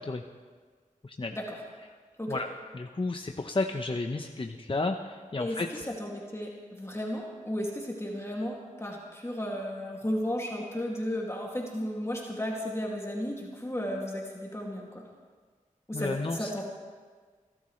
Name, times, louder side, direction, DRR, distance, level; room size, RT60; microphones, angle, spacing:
voice 1, 1.0-1.4 2.3-5.9 15.9-16.5, left 3 dB, 40° left, 4 dB, 0.8 m, -32 dB
voice 2, 5.9-15.0 15.9-16.6, equal, 20° left, -2 dB, 2.3 m, -34 dB
29.5 x 12.5 x 3.2 m, 1.5 s
cardioid pair, 50°, 14 cm